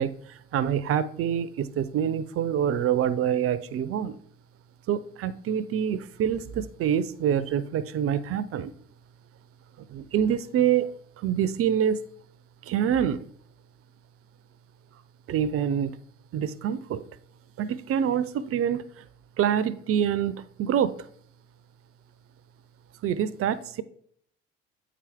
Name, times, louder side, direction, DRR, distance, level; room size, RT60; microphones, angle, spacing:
voice 1, 0.0-4.2 4.9-8.7 9.9-12.0 12.6-13.2 15.3-16.0 16.3-17.0 17.6-19.0 19.4-20.9 23.0-23.8, right 9 dB, 45° right, 16 dB, 0.6 m, -26 dB
8.5 x 4.8 x 3.4 m, 0.64 s
hypercardioid pair, 55°, 33 cm